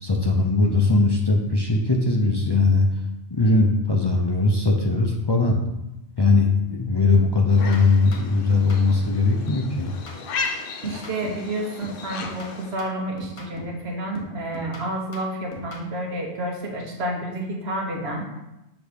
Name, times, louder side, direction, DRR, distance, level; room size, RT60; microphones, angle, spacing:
voice 1, 0.0-2.9 3.3-5.6 6.2-9.9, left 3 dB, 35° left, 0 dB, 0.5 m, -20 dB
sound 1, 6.6-6.8 7.1-9.2 9.5-11.5 11.8-13.8 14.1-15.9, equal, 85° left, 1.4 m, -41 dB
sound 2, 7.5-12.8, left 5 dB, 65° left, 0.8 m, -35 dB
voice 2, 10.8-18.3, right 1 dB, 85° right, 0 dB, 1.3 m, -30 dB
6.3 x 3.0 x 5.1 m, 0.93 s
omnidirectional pair, 1.0 m